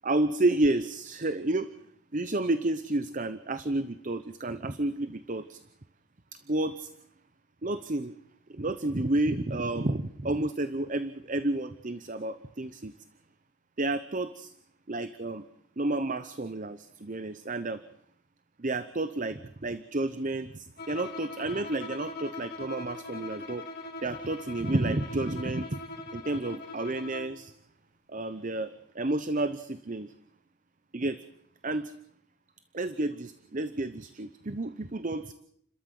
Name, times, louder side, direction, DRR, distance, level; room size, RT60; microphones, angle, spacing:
voice 1, 0.0-1.7 2.1-5.6 6.3-6.9 7.6-8.1 8.5-12.9 13.8-14.5 14.9-15.4 15.8-17.8 18.6-23.7 24.0-25.8 26.1-27.5 28.1-30.1 30.9-31.2 31.6-31.9 32.7-35.3, right 2 dB, 35° right, 12 dB, 0.8 m, -30 dB
Bowed string instrument, 20.8-27.4, left 3 dB, 45° left, 2.0 m, -41 dB
30.0 x 13.5 x 7.7 m, 0.70 s
head